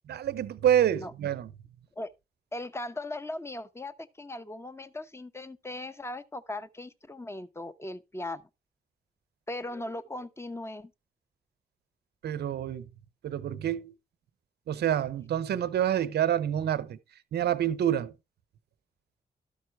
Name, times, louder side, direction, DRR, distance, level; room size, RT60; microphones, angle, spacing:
voice 1, 0.1-1.5 12.2-12.8 13.2-13.9 14.7-17.0 17.3-18.1, right 10 dB, 80° right, 0.8 m, -27 dB
voice 2, 2.5-8.4 9.5-10.9, left 2 dB, 15° left, 1.0 m, -38 dB
12.5 x 5.4 x 4.5 m
supercardioid pair, 40°, 17 cm